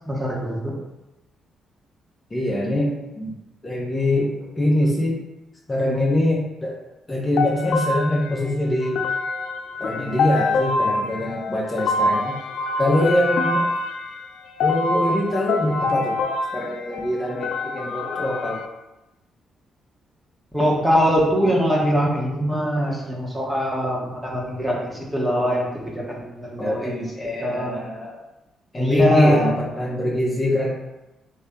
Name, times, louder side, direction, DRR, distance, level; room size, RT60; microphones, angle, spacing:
voice 1, 0.1-0.7 20.5-26.9 27.4-27.8 28.7-29.5, equal, 10° right, -4 dB, 1.2 m, -22 dB
voice 2, 2.3-3.3 3.6-5.2 5.7-6.7 7.1-9.0 9.8-12.3 12.8-13.6 14.6-16.2 16.5-18.6 26.6-28.2 28.7-30.7, left 1 dB, 25° left, -4 dB, 0.8 m, -23 dB
sound 1, 7.4-18.7, left 2 dB, 75° left, 0.3 m, -25 dB
3.2 x 2.8 x 3.7 m, 0.98 s
supercardioid pair, 60°, 0 cm